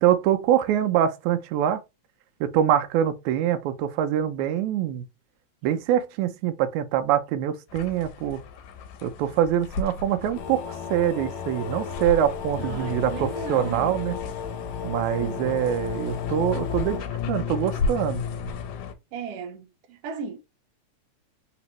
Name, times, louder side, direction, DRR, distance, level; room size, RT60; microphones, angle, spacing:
voice 1, 0.0-1.8 2.4-5.0 5.6-8.4 9.0-14.1 14.8-18.2, right 10 dB, 85° right, 2.0 m, -24 dB
sound 1, 7.7-18.9, left 5 dB, 90° left, 2.0 m, -33 dB
sound 2, 10.3-17.0, left 6 dB, 70° left, 1.2 m, -36 dB
voice 2, 12.6-14.0 15.1-15.5 19.1-20.4, right 6 dB, 70° right, 1.7 m, -36 dB
4.1 x 3.5 x 3.0 m
omnidirectional pair, 3.3 m